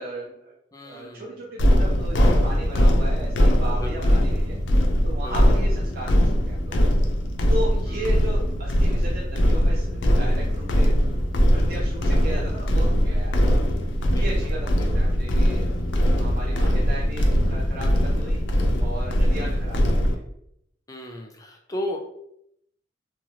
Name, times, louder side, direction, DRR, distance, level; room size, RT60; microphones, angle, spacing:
voice 1, 0.0-0.5 0.8-4.6 5.0-6.8 7.5-10.9 11.5-13.5 14.1-20.2, right 1 dB, 55° right, -5 dB, 0.6 m, -36 dB
voice 2, 0.7-1.4 3.7-4.1 5.2-5.3 7.9-8.3 14.1-15.0 16.5-16.7 20.9-22.0, left 1 dB, 20° left, 2 dB, 0.4 m, -36 dB
sound 1, 1.6-20.1, equal, 90° left, 0.5 m, -21 dB
3.0 x 2.2 x 2.8 m, 0.75 s
head